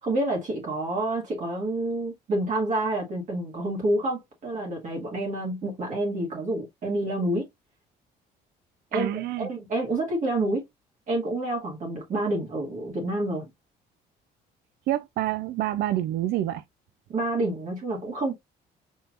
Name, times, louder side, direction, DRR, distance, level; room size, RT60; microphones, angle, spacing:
voice 1, 0.0-7.5 8.9-9.1 9.4-10.6 11.1-13.5 17.1-18.3, right 1 dB, 45° right, 1.7 m, -28 dB
voice 2, 8.9-9.5 14.9-16.6, right 13 dB, 70° right, 0.5 m, -27 dB
4.4 x 3.3 x 2.4 m
cardioid pair, 110°, 17 cm